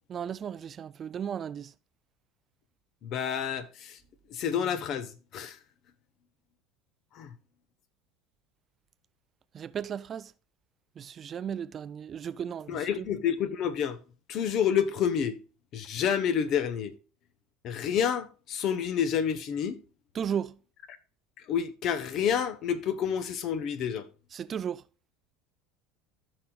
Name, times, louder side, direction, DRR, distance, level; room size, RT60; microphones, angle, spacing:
voice 1, 0.1-1.7 9.5-10.3 11.0-13.1 20.2-20.6 24.3-24.8, right 8 dB, 30° right, 0.3 m, -35 dB
voice 2, 3.0-4.0 4.3-5.6 7.1-7.3 12.7-14.0 14.3-15.4 15.7-16.9 17.6-19.8 21.4-24.1, left 8 dB, 45° left, 1.1 m, -29 dB
14.0 x 6.2 x 2.4 m
supercardioid pair, 125°, 0 cm